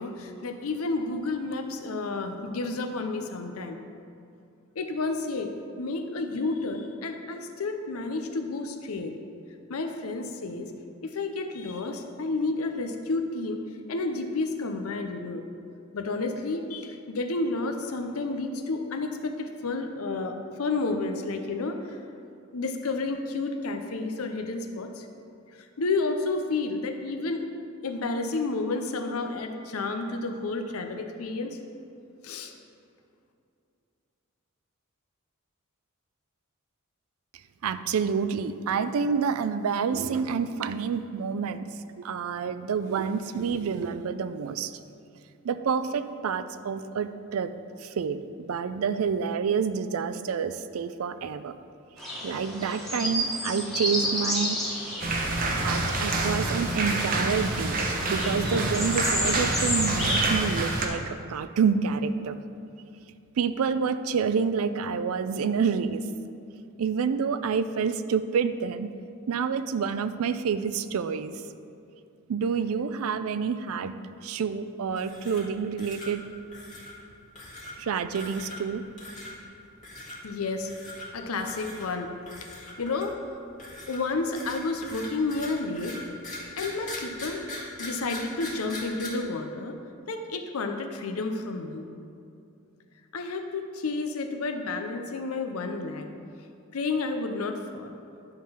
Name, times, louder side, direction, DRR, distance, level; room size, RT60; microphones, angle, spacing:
voice 1, 0.0-3.8 4.8-5.5 5.8-9.1 9.7-10.7 11.0-13.6 13.9-15.4 15.9-22.0 22.5-25.1 25.8-27.4 27.8-31.6 32.2-32.5 80.2-80.7 81.1-82.1 82.4-83.1 83.9-86.0 86.6-87.4 87.8-89.8 90.1-91.9 93.1-96.1 96.7-97.9, left 3 dB, 75° left, 5 dB, 0.6 m, -31 dB
voice 2, 37.6-41.7 42.0-44.7 45.4-47.5 47.8-51.5 52.2-54.6 55.5-62.4 63.4-66.0 66.8-68.9 69.3-71.4 72.3-73.9 74.2-76.2 77.8-78.8, right 6 dB, 70° right, 12 dB, 0.4 m, -28 dB
sound 1, 52.0-60.3, equal, ahead, 1.4 m, -31 dB
sound 2, 55.0-60.9, right 2 dB, 40° right, 0.8 m, -27 dB
sound 3, 74.9-75.5 75.8-76.1 76.5-76.9 77.4-77.7 78.1-78.7 79.0-79.3 79.8-80.2 80.6-81.1 81.4-81.9 82.3-83.2 83.6-89.1, left 2 dB, 35° left, 1.7 m, -40 dB
10.0 x 3.8 x 5.6 m, 2.6 s
head